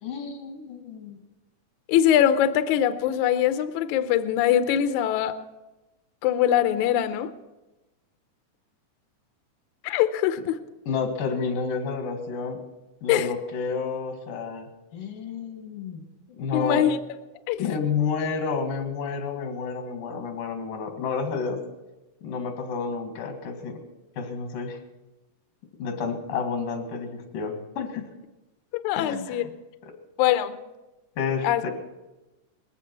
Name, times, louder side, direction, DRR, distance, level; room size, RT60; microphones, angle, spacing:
voice 1, 0.0-1.2 10.9-12.6 13.0-16.9 17.6-21.6 22.2-23.8 24.2-24.8 25.8-28.1 29.0-29.5 29.8-29.9 31.2-31.7, left 5 dB, 90° left, 5 dB, 3.6 m, -30 dB
voice 2, 1.9-5.4 6.2-7.3 9.8-10.6 13.1-13.3 16.5-17.0 17.5-17.7 28.8-29.4 30.2-30.5 31.4-31.6, left 11 dB, 75° left, 10 dB, 2.0 m, -22 dB
20.0 x 15.5 x 4.6 m, 1.1 s
omnidirectional pair, 3.8 m